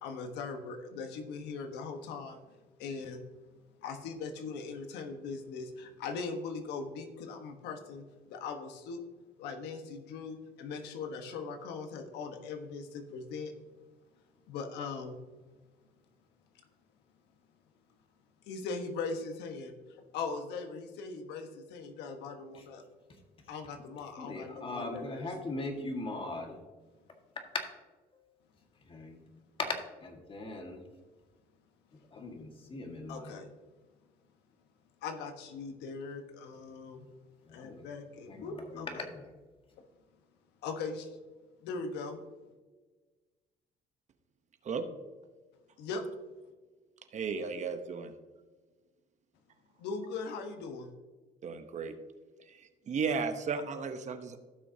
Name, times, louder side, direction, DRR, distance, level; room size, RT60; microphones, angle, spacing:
voice 1, 0.0-2.4 2.8-3.2 3.8-9.0 9.4-13.5 14.5-15.2 18.5-19.8 20.1-22.8 23.5-25.3 33.1-33.5 35.0-37.1 37.5-39.1 40.6-41.1 41.6-42.2 45.8-46.0 49.8-50.9, left 4 dB, 85° left, 6 dB, 1.2 m, -40 dB
voice 2, 24.2-26.6 28.9-29.2 29.6-29.7 30.0-30.8 32.1-33.3 37.5-37.8 38.3-39.2, left 2 dB, 30° left, 3 dB, 1.7 m, -40 dB
voice 3, 47.1-48.1 51.4-51.9 52.4-54.4, right 5 dB, 45° right, 8 dB, 0.9 m, -35 dB
15.5 x 6.2 x 2.8 m, 1.3 s
cardioid pair, 110°, 17 cm